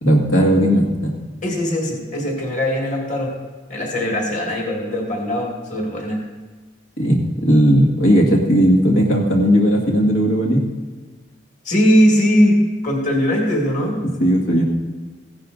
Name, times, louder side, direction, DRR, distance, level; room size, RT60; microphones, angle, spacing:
voice 1, 0.0-1.2 7.0-10.7 14.2-14.6, equal, 85° left, -1 dB, 1.9 m, -16 dB
voice 2, 1.4-3.4 3.7-6.2 11.6-14.0, equal, 35° left, -1 dB, 2.2 m, -19 dB
15.5 x 11.5 x 2.6 m, 1.3 s
head